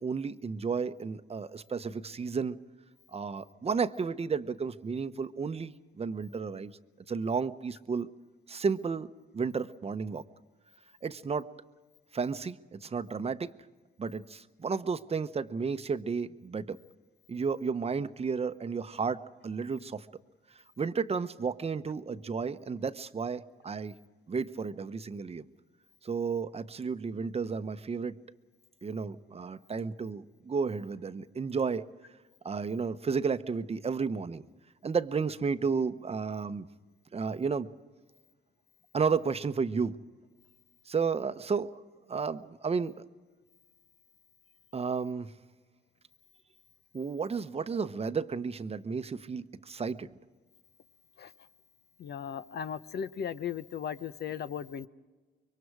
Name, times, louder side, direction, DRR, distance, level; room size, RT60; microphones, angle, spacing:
voice 1, 0.0-2.6 3.1-6.8 7.1-8.1 8.5-10.2 11.0-11.5 12.1-13.5 14.0-16.8 17.3-20.1 20.8-24.0 24.3-25.5 26.0-28.2 28.8-31.8 32.4-34.4 34.8-36.7 37.1-37.7 38.9-40.0 40.9-41.8 42.1-43.0 44.7-45.3 46.9-50.2, right 5 dB, 30° right, 11 dB, 0.9 m, -32 dB
voice 2, 52.0-54.9, left 8 dB, 55° left, 13 dB, 0.9 m, -37 dB
25.5 x 23.5 x 4.8 m, 1.3 s
cardioid pair, 90°, 20 cm